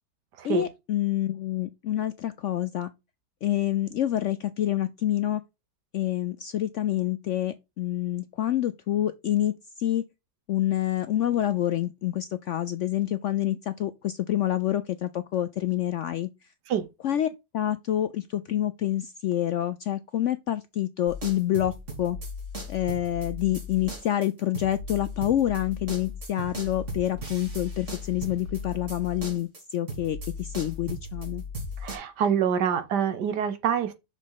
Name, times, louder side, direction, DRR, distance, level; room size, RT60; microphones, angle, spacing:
voice 1, 0.4-2.9 3.4-5.4 5.9-10.0 10.5-16.3 17.0-22.2 22.7-31.4, left 12 dB, 75° left, 0.7 m, -27 dB
sound 1, 21.1-29.6 29.9-32.0, left 1 dB, 45° right, 2.8 m, -37 dB
voice 2, 31.8-33.9, right 8 dB, 80° right, 1.6 m, -26 dB
6.3 x 5.4 x 3.9 m
omnidirectional pair, 1.8 m